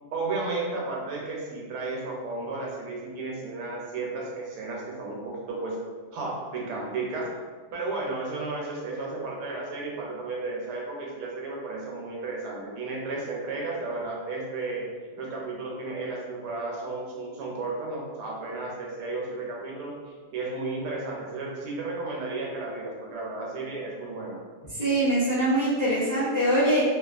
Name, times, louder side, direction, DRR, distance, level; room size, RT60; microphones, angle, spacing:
voice 1, 0.1-5.8 6.1-7.3 7.7-14.8 15.2-19.9 20.3-24.4, right 3 dB, 90° right, -2 dB, 1.2 m, -33 dB
voice 2, 24.8-26.8, right 1 dB, 45° left, -12 dB, 0.5 m, -23 dB
3.0 x 2.3 x 2.4 m, 1.5 s
omnidirectional pair, 1.7 m